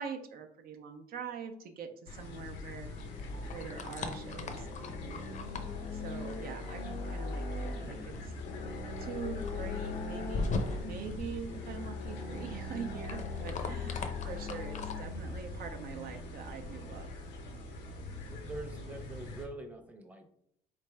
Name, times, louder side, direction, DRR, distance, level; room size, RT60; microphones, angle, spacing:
voice 1, 0.0-2.9 3.5-5.2 5.9-8.3 9.0-17.1, right 6 dB, 60° right, 6 dB, 0.6 m, -44 dB
sound 1, 2.1-19.5, left 3 dB, 85° left, 0.8 m, -40 dB
sound 2, 3.0-15.0, left 3 dB, 45° left, 0.6 m, -42 dB
voice 2, 18.2-20.3, right 2 dB, 10° right, 4 dB, 0.7 m, -44 dB
4.1 x 3.3 x 3.3 m, 0.71 s
cardioid pair, 110°, 17 cm